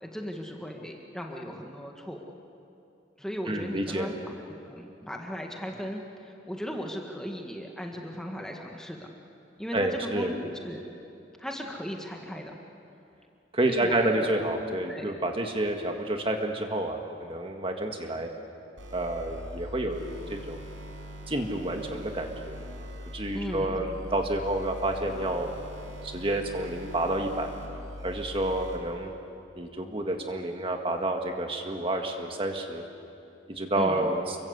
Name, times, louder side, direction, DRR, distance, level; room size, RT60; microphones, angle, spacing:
voice 1, 0.0-2.2 3.2-9.1 9.6-10.8 11.4-12.5 13.7-14.5 14.9-15.1 23.3-23.9 33.8-34.1, equal, 5° left, 1 dB, 1.7 m, -37 dB
voice 2, 3.5-4.1 9.7-10.3 13.5-18.3 18.9-20.6 21.3-22.6 23.1-25.5 26.0-27.5 28.0-29.1 29.6-32.8 33.5-34.4, right 1 dB, 30° right, 3 dB, 1.8 m, -29 dB
sound 1, 18.8-28.8, equal, 85° right, 5.8 m, -42 dB
29.5 x 23.0 x 8.2 m, 2.7 s
head